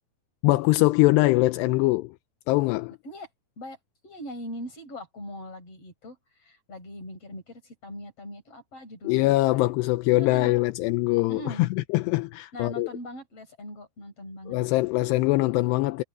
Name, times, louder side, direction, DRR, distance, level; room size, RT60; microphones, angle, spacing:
voice 1, 0.4-2.1 2.5-3.0 9.0-12.9 14.5-16.0, left 20 dB, 85° left, 2.8 m, -23 dB
voice 2, 4.0-9.7 10.2-10.5 11.3-11.6 12.5-14.6, equal, 35° left, 7.9 m, -41 dB
omnidirectional pair, 4.8 m